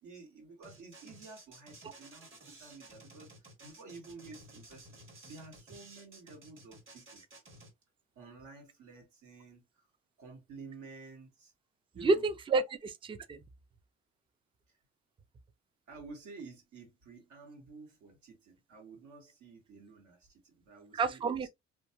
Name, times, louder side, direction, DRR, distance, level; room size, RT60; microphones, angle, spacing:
voice 1, 0.0-7.2 8.1-9.9 10.2-11.5 11.9-12.2 14.7-14.8 15.9-21.5, right 4 dB, 75° right, 1.3 m, -51 dB
sound 1, 0.6-7.7, right 2 dB, 40° right, 1.3 m, -54 dB
voice 2, 11.9-13.4 20.9-21.5, right 3 dB, 20° right, 0.3 m, -30 dB
2.5 x 2.3 x 2.6 m
cardioid pair, 90°, 30 cm